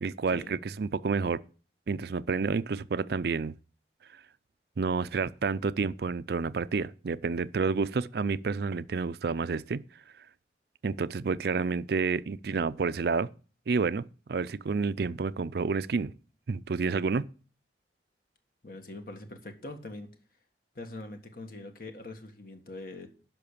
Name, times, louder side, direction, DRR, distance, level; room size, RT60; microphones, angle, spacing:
voice 1, 0.0-1.4 1.9-3.5 4.8-9.8 10.8-13.3 13.7-14.0 14.3-16.1 16.5-17.3, right 4 dB, 60° right, 0.4 m, -29 dB
voice 2, 18.6-20.1 20.7-23.1, left 2 dB, 55° left, 1.6 m, -43 dB
10.5 x 5.9 x 6.8 m
head